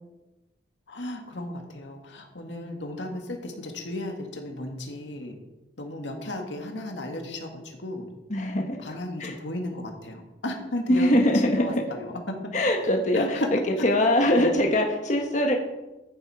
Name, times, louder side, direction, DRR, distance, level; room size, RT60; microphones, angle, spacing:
voice 1, 0.9-5.3 5.8-8.1 8.8-11.1 11.4-12.2 13.1-13.5 14.4-14.5, left 1 dB, 85° left, 3 dB, 1.9 m, -34 dB
voice 2, 8.3-9.3 10.9-11.7 12.5-13.4 13.8-15.5, left 1 dB, 40° left, 2 dB, 1.4 m, -22 dB
13.5 x 7.4 x 4.9 m, 1.0 s
head